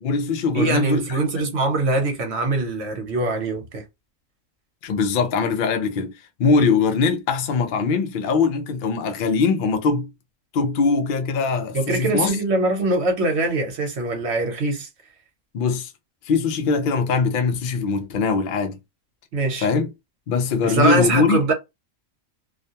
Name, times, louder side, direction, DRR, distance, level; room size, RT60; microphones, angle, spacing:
voice 1, 0.0-1.5 4.8-10.1 10.5-12.3 15.5-15.9 16.2-18.8 19.6-19.9 20.3-21.4, left 4 dB, 70° left, 0.5 m, -22 dB
voice 2, 0.5-3.8 11.7-14.9 19.3-19.7 20.6-21.5, right 2 dB, 55° right, 1.1 m, -22 dB
2.5 x 2.2 x 2.7 m
omnidirectional pair, 1.5 m